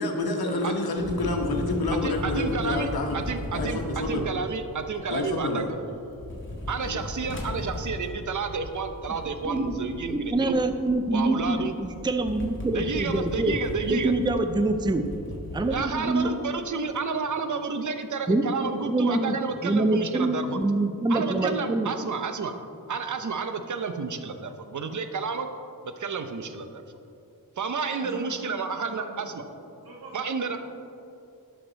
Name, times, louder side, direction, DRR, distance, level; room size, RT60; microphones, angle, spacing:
voice 1, 0.0-3.2 3.5-4.3 5.1-5.7 6.2-6.4 6.8-7.0, left 2 dB, 75° left, 2 dB, 1.3 m, -28 dB
sound 1, 1.0-5.7 6.0-15.8, left 1 dB, 30° left, 1.7 m, -37 dB
voice 2, 1.9-5.7 6.7-10.6 11.1-11.7 12.7-14.1 15.7-20.6 21.1-22.5 22.9-25.5 25.8-26.8 27.6-29.4 30.1-30.6, right 5 dB, 55° right, 8 dB, 0.7 m, -31 dB
voice 3, 9.4-13.6 13.9-16.3 18.3-19.4 19.6-21.9, right 2 dB, 10° right, 7 dB, 0.5 m, -26 dB
voice 4, 27.9-28.3 28.6-29.3 29.8-30.6, right 1 dB, 80° right, -4 dB, 2.1 m, -42 dB
11.5 x 6.1 x 4.0 m, 2.7 s
wide cardioid pair, 80°, 37 cm